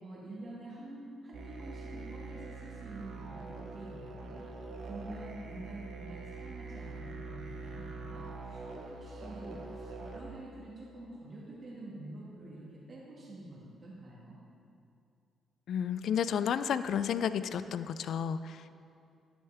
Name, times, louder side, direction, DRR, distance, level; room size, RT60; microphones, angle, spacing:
voice 1, 0.0-4.4 4.9-14.4, right 1 dB, 45° right, -5 dB, 1.8 m, -47 dB
sound 1, 1.3-10.2, right 3 dB, 70° right, 0.9 m, -44 dB
voice 2, 15.7-18.7, left 8 dB, 65° left, 13 dB, 0.3 m, -32 dB
11.5 x 6.5 x 3.5 m, 2.5 s
cardioid pair, 90°, 0 cm